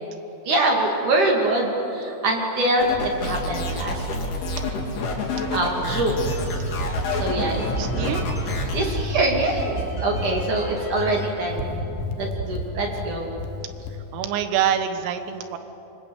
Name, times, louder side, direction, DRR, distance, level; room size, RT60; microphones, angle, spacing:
voice 1, 0.5-4.1 5.5-6.3 7.1-7.6 8.6-11.7 12.2-13.3, right 2 dB, 45° right, 0 dB, 3.7 m, -24 dB
sound 1, 2.8-8.8, left 2 dB, 55° left, 5.0 m, -28 dB
sound 2, 5.9-11.3 11.6-12.0 12.4-13.8, right 2 dB, ahead, 7.0 m, -31 dB
sound 3, 6.4-7.7 8.3-9.7 10.1-10.5 11.0-13.1 13.4-14.0, left 6 dB, 70° left, 3.3 m, -34 dB
voice 2, 7.8-8.3 14.1-15.6, right 9 dB, 85° right, 9 dB, 4.0 m, -25 dB
27.0 x 25.5 x 8.3 m, 3.0 s
omnidirectional pair, 5.8 m